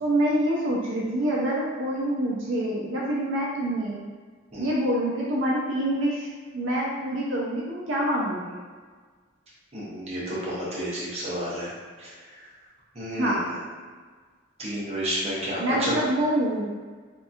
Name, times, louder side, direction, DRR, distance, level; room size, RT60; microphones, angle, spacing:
voice 1, 0.0-4.0 4.6-6.3 6.5-8.6 13.1-13.6 15.6-16.7, right 1 dB, 75° right, -5 dB, 0.5 m, -26 dB
voice 2, 9.7-11.7 12.0-12.5 12.9-13.6 14.6-15.9, equal, 35° right, -7 dB, 0.8 m, -31 dB
2.8 x 2.6 x 2.3 m, 1.5 s
head